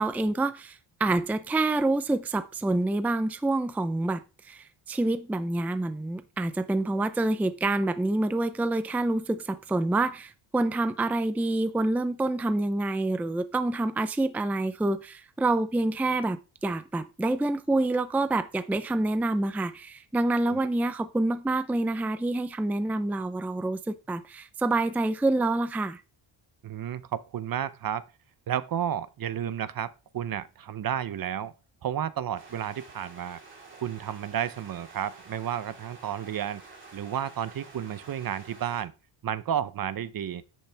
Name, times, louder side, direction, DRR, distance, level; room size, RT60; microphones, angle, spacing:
voice 1, 0.0-26.0, right 2 dB, 5° right, 0.5 m, -27 dB
voice 2, 26.6-28.0 28.5-31.5 31.8-33.4 33.8-36.6 36.9-38.9 39.2-40.4, right 9 dB, 45° right, 0.7 m, -32 dB
sound 1, 32.3-38.8, right 3 dB, 25° right, 3.6 m, -50 dB
10.5 x 8.5 x 3.4 m
cardioid pair, 145°, 48 cm